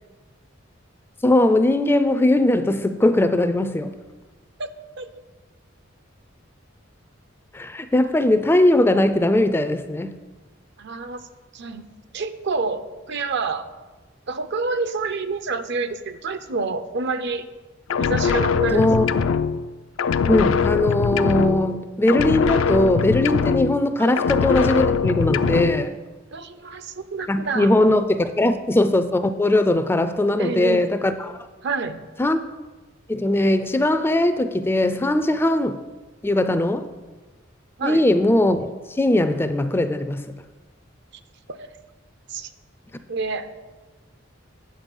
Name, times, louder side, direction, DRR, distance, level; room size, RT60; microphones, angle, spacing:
voice 1, 1.2-3.9 7.5-10.2 18.7-19.1 20.3-26.0 27.3-31.3 32.2-32.4 33.1-35.8 36.2-36.9 37.8-40.4, left 1 dB, 10° left, 0.3 m, -20 dB
voice 2, 10.8-11.9 12.1-13.7 14.3-17.5 18.0-18.9 24.0-24.2 26.3-27.7 30.4-30.8 31.6-32.0 37.8-38.0 41.5-41.7 42.3-42.5 43.1-43.5, right 4 dB, 60° right, 0.6 m, -28 dB
sound 1, 17.9-19.7 20.0-21.8 22.1-23.9 24.2-25.9, left 6 dB, 80° left, 0.4 m, -22 dB
8.9 x 6.6 x 5.4 m
head